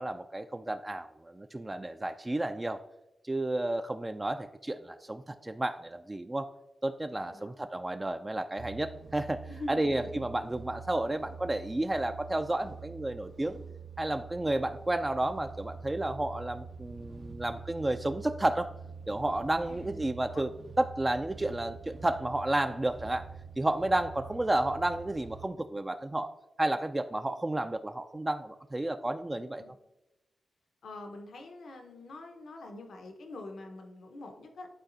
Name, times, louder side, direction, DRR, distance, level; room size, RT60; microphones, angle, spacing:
voice 1, 0.0-2.8 3.2-6.5 6.8-9.4 9.7-13.6 14.0-18.7 19.1-20.5 20.8-23.3 23.6-26.3 26.6-29.6, right 1 dB, 20° right, 7 dB, 0.3 m, -31 dB
voice 2, 7.1-7.5 9.5-10.3 19.6-20.0 20.3-20.5 29.3-29.8 30.8-34.7, left 2 dB, 80° left, 3 dB, 0.9 m, -45 dB
sound 1, 8.6-25.5, right 5 dB, 60° right, 0.6 m, -46 dB
11.5 x 4.1 x 2.6 m, 0.99 s
cardioid pair, 80°, 0 cm